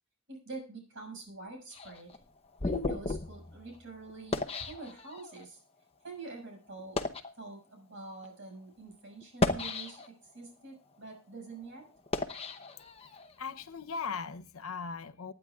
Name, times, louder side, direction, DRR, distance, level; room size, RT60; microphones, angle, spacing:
voice 1, 0.3-2.1 2.6-5.6 6.0-7.0 7.3-11.9, right 3 dB, 60° right, 6.3 m, -45 dB
sound 1, 1.7-5.4 6.1-6.3 6.8-7.3 8.1-8.3 9.2-10.3 10.8-13.3, left 2 dB, 30° left, 0.9 m, -35 dB
voice 2, 12.9-15.3, left 5 dB, 75° left, 0.8 m, -39 dB
25.0 x 9.8 x 2.4 m
head